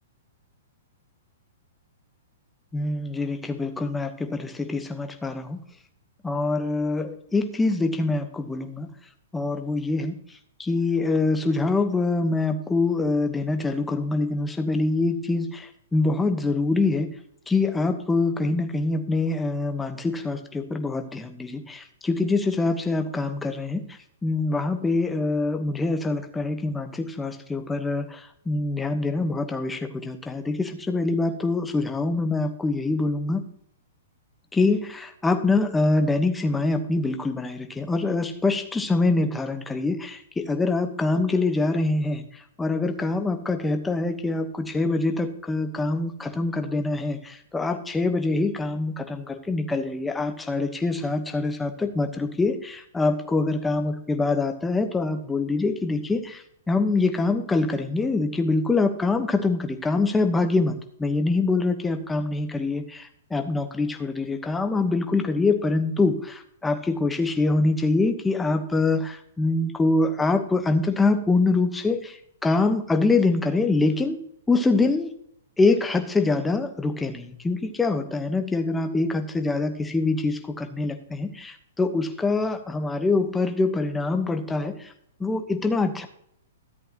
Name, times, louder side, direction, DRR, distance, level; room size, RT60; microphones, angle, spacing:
voice 1, 2.7-5.6 6.2-8.9 9.3-17.1 17.5-33.4 34.5-74.2 74.5-75.1 75.6-84.9 85.2-86.1, left 3 dB, 10° left, 6 dB, 1.1 m, -25 dB
13.5 x 8.2 x 2.9 m, 0.69 s
hypercardioid pair, 145°, 0 cm